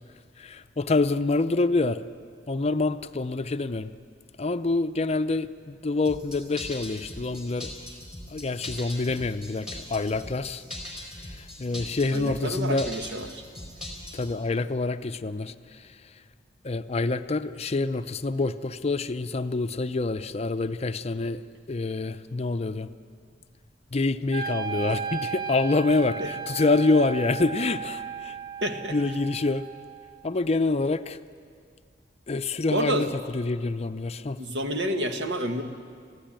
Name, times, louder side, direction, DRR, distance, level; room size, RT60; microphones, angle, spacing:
voice 1, 0.4-2.0 2.5-3.9 4.4-7.7 8.3-10.6 11.3-12.9 14.1-15.9 16.6-22.9 23.9-28.4 28.9-29.6 30.2-31.2 32.3-33.1 33.3-34.4, left 3 dB, 35° left, 11 dB, 0.6 m, -26 dB
sound 1, 6.0-14.3, left 1 dB, 5° right, 4.4 m, -39 dB
voice 2, 12.1-13.4 26.2-26.3 28.6-28.9 32.7-33.1 34.4-35.6, right 1 dB, 80° right, 5 dB, 1.6 m, -29 dB
Wind instrument woodwind instrument, 24.3-30.4, right 6 dB, 60° right, 0.8 m, -35 dB
22.0 x 15.0 x 9.1 m, 2.1 s
head